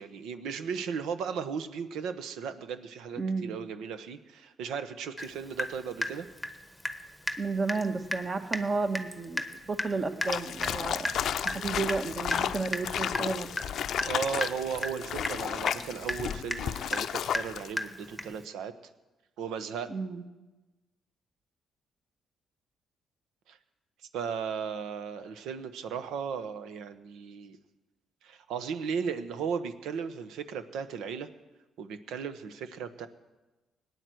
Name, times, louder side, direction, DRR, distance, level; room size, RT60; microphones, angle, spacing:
voice 1, 0.0-6.3 14.0-18.7 19.4-19.9 23.5-23.6 24.1-27.6 28.2-31.3 31.8-33.1, right 6 dB, 85° right, 10 dB, 1.0 m, -36 dB
voice 2, 3.2-3.5 7.4-11.1 11.4-13.6 19.9-20.2, right 3 dB, 35° right, 7 dB, 1.5 m, -32 dB
Water tap faucet / Drip, 5.2-5.3 5.6-7.0 7.3-7.4 7.7-7.9 8.1-8.2 8.5-8.7 8.9-18.4, left 1 dB, 5° left, 1.1 m, -34 dB
sound 1, 10.2-17.7, left 9 dB, 70° left, 0.5 m, -33 dB
sound 2, 11.1-16.4, right 1 dB, 15° right, 3.4 m, -51 dB
18.0 x 9.8 x 7.8 m, 1.1 s
cardioid pair, 90°, 0 cm